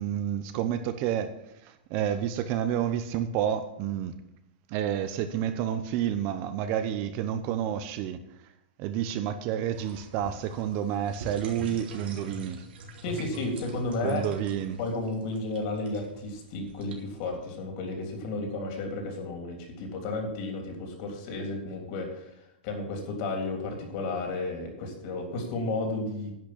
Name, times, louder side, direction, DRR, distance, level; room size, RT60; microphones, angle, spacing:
voice 1, 0.0-1.3 1.6-4.2 4.7-8.2 8.8-12.6 14.0-14.8, right 10 dB, 35° right, 0.8 m, -29 dB
sound 1, 9.7-17.3, right 1 dB, 75° right, 3.1 m, -45 dB
voice 2, 13.0-14.2 14.8-22.3 22.6-26.3, left 2 dB, 45° left, 3.4 m, -33 dB
10.5 x 6.3 x 8.6 m
supercardioid pair, 155°, 6 cm